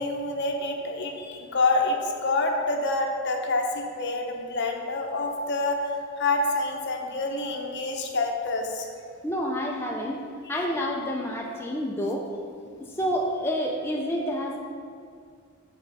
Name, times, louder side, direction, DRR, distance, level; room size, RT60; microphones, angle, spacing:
voice 1, 0.0-5.8 6.2-8.9, left 2 dB, 55° left, 3 dB, 0.7 m, -27 dB
voice 2, 9.2-10.2 10.5-12.2 13.0-14.6, equal, 10° left, -1 dB, 0.3 m, -28 dB
6.3 x 3.6 x 5.3 m, 2.2 s
head